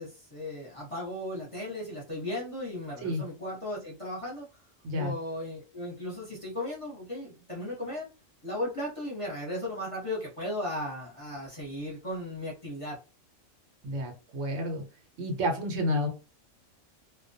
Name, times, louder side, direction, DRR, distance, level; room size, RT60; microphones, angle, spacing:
voice 1, 0.0-4.5 4.9-8.1 8.4-13.0, left 1 dB, 30° left, -3 dB, 0.8 m, -36 dB
voice 2, 13.8-14.8 15.2-16.1, left 1 dB, 70° right, 3 dB, 0.9 m, -30 dB
2.2 x 2.2 x 2.6 m, 0.30 s
omnidirectional pair, 1.3 m